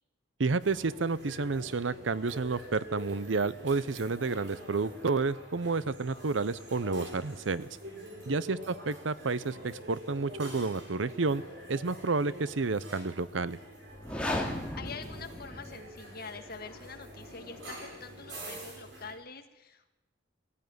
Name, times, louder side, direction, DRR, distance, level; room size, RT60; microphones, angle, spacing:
voice 1, 0.4-7.7 8.3-11.4 11.7-13.6, right 4 dB, 80° right, 17 dB, 0.7 m, -30 dB
sound 1, 0.6-19.1, equal, 65° right, 5.6 m, -46 dB
sound 2, 13.9-16.0, left 1 dB, 5° left, 2.3 m, -35 dB
voice 2, 14.4-20.0, left 4 dB, 50° left, 6 dB, 1.8 m, -46 dB
19.0 x 15.5 x 9.5 m, 1.0 s
head